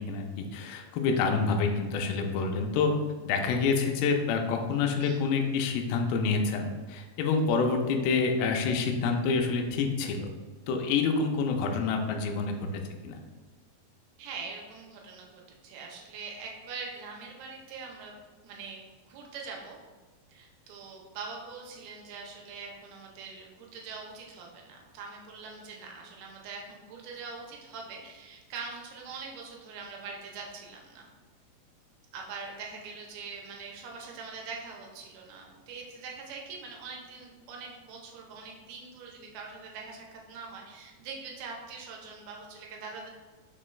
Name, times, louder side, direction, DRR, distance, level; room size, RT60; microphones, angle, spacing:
voice 1, 0.1-2.9 3.3-10.3 10.7-12.5 13.0-13.2, left 4 dB, 80° left, 3 dB, 2.1 m, -27 dB
voice 2, 14.2-18.1 18.4-19.8 20.3-31.1 32.1-43.1, right 4 dB, 80° right, 0 dB, 2.6 m, -43 dB
6.0 x 2.2 x 3.1 m, 1.4 s
omnidirectional pair, 4.5 m